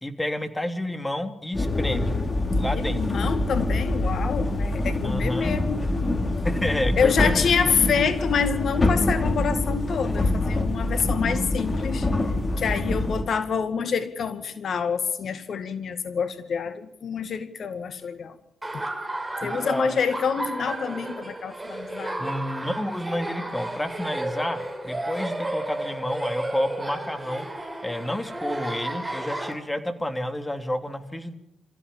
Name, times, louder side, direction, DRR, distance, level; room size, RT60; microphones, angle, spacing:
voice 1, 0.0-2.2 2.5-3.2 5.0-5.5 6.4-7.5 19.4-19.9 22.2-27.5 27.8-31.3, left 1 dB, 15° left, 7 dB, 3.3 m, -30 dB
sound 1, 1.5-13.2, left 2 dB, 35° left, 4.7 m, -25 dB
voice 2, 2.7-6.1 7.0-12.1 12.6-18.4 18.7-18.8 19.4-22.2, left 6 dB, 60° left, 11 dB, 2.0 m, -27 dB
Laughter, 18.6-29.5, right 1 dB, 15° right, 6.4 m, -33 dB
25.0 x 15.0 x 7.1 m, 0.78 s
hypercardioid pair, 45°, 0 cm